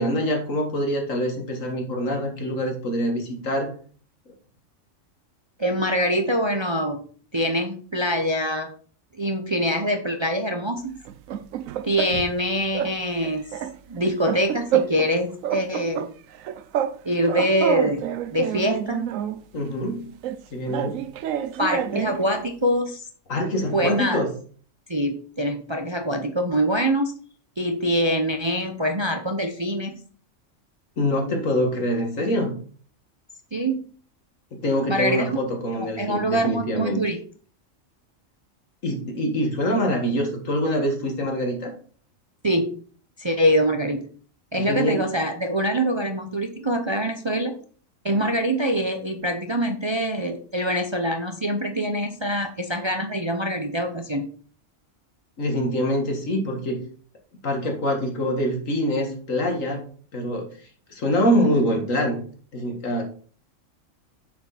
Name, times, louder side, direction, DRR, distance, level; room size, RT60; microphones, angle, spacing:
voice 1, 0.0-3.7 19.5-20.1 20.5-21.0 23.3-24.3 31.0-32.5 34.5-37.0 38.8-41.7 44.5-45.0 55.4-56.8 57.4-59.9 60.1-60.5 60.9-62.2 62.5-63.0, equal, 75° left, 2 dB, 2.2 m, -25 dB
voice 2, 5.6-7.1 7.3-8.7 9.2-11.0 11.8-13.5 13.9-16.1 17.0-19.1 21.6-23.1 23.7-24.2 24.9-27.1 27.6-30.0 33.5-33.8 34.9-35.4 35.8-37.2 42.4-42.7 43.2-44.1 44.5-47.6 48.0-54.3, equal, 30° right, 5 dB, 0.6 m, -24 dB
sound 1, 11.1-12.4 12.7-13.0 13.2-15.1 15.4-17.0 17.2-19.4 20.2-22.2, right 10 dB, 80° right, 1.0 m, -28 dB
7.1 x 6.8 x 4.1 m, 0.43 s
omnidirectional pair, 1.4 m